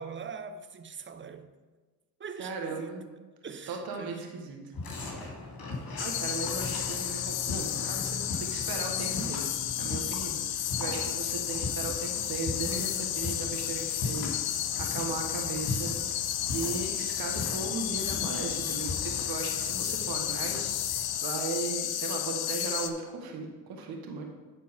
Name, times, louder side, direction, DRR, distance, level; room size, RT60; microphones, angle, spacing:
voice 1, 0.0-1.5 2.2-4.8, right 5 dB, 30° right, 0.8 m, -43 dB
voice 2, 2.4-3.1 3.7-4.6 6.0-14.4 14.8-15.9 16.5-20.7 21.2-24.2, right 4 dB, 80° right, 1.5 m, -37 dB
sound 1, 4.7-21.2, left 3 dB, 70° left, 2.6 m, -39 dB
sound 2, 6.0-22.9, left 11 dB, 85° left, 0.6 m, -32 dB
10.0 x 4.5 x 5.2 m
supercardioid pair, 60°, 36 cm